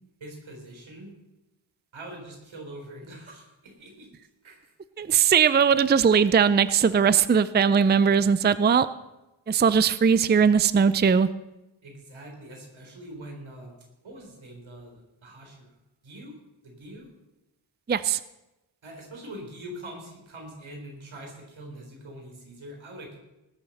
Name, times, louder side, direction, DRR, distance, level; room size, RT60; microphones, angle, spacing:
voice 1, 0.2-1.1 1.9-4.1 4.4-4.7 11.8-13.7 14.0-15.7 16.0-16.3 16.6-17.1 18.8-23.1, right 1 dB, 85° right, 1 dB, 4.3 m, -43 dB
voice 2, 5.0-8.9 9.5-11.3 17.9-18.2, right 6 dB, 25° right, 15 dB, 0.4 m, -20 dB
19.5 x 7.3 x 6.6 m, 0.98 s
wide cardioid pair, 85°, 46 cm